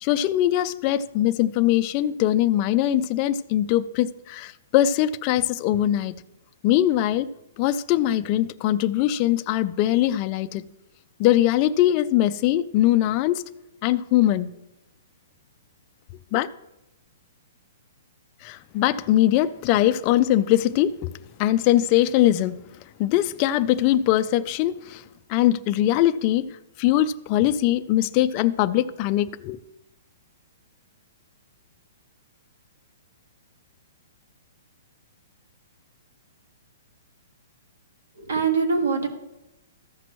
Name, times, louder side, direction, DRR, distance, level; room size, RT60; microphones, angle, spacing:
voice 1, 0.0-6.2 6.6-7.3 7.6-10.6 11.2-13.5 13.8-14.5 16.3-16.5 18.4-21.1 21.4-22.6 23.0-25.0 25.3-29.6, left 13 dB, 30° left, 0.3 m, -21 dB
voice 2, 38.2-39.1, right 5 dB, 85° right, 1.8 m, -23 dB
14.0 x 5.9 x 3.0 m
hypercardioid pair, 165°, 0 cm